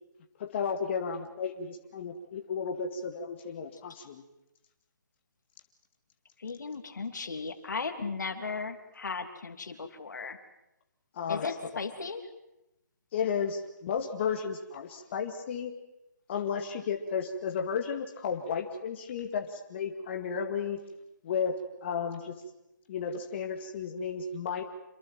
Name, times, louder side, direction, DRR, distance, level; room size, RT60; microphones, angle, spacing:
voice 1, 0.4-4.2 11.1-11.5 13.1-15.7 16.3-20.8 21.2-22.4 22.9-24.6, left 6 dB, 40° left, 4 dB, 2.1 m, -33 dB
voice 2, 6.4-10.4 11.3-12.3, left 4 dB, 70° left, 8 dB, 3.1 m, -36 dB
27.5 x 22.0 x 7.6 m, 0.91 s
hypercardioid pair, 150°, 10 cm